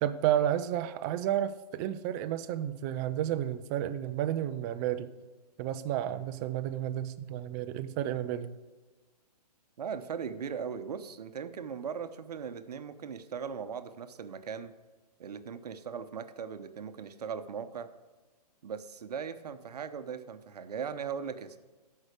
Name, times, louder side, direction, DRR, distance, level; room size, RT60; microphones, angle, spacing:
voice 1, 0.0-5.1 5.6-8.6, right 11 dB, 25° right, 11 dB, 0.5 m, -31 dB
voice 2, 9.8-14.7 15.2-17.9 18.6-21.6, right 7 dB, 70° right, 10 dB, 0.9 m, -39 dB
13.5 x 5.7 x 4.8 m, 1.3 s
hypercardioid pair, 140°, 21 cm